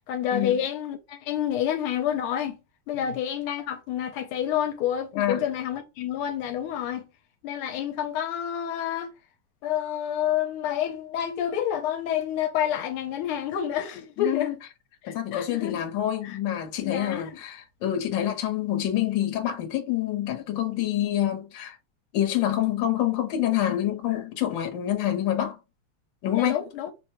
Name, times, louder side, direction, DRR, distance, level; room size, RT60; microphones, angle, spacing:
voice 1, 0.1-2.6 2.9-7.0 7.4-9.1 9.6-14.6 15.0-15.8 16.2-16.4 16.8-17.3 26.4-26.9, left 10 dB, 85° left, 1.5 m, -28 dB
voice 2, 5.1-5.4 14.2-14.5 15.0-21.8 22.1-25.6 26.2-26.6, left 12 dB, 65° left, 1.5 m, -27 dB
5.3 x 2.1 x 2.9 m
omnidirectional pair, 2.4 m